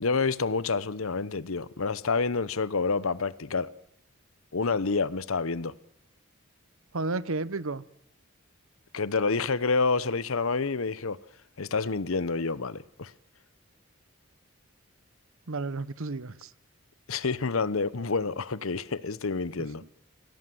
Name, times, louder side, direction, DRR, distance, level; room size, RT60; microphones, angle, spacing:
voice 1, 0.0-3.7 4.5-5.7 8.9-11.2 11.6-13.1 17.1-19.8, left 4 dB, 80° left, 0.9 m, -28 dB
voice 2, 6.9-7.8 15.5-16.5 19.6-19.7, right 3 dB, 80° right, 1.0 m, -32 dB
25.5 x 17.5 x 7.7 m
head